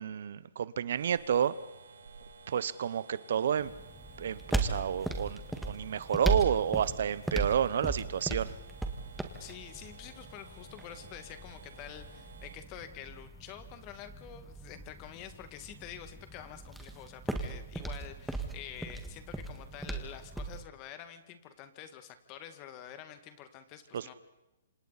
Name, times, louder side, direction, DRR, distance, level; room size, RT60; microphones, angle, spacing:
voice 1, 0.0-1.5 2.5-3.7 4.2-8.5 23.9-24.1, right 8 dB, 65° right, 17 dB, 1.0 m, -30 dB
sound 1, 0.9-12.6, right 4 dB, 85° right, 2.4 m, -54 dB
sound 2, 3.6-20.6, right 2 dB, ahead, 1.9 m, -38 dB
voice 2, 9.4-24.1, left 10 dB, 30° left, 9 dB, 2.2 m, -48 dB
27.0 x 27.0 x 4.3 m, 0.93 s
hypercardioid pair, 155°, 0 cm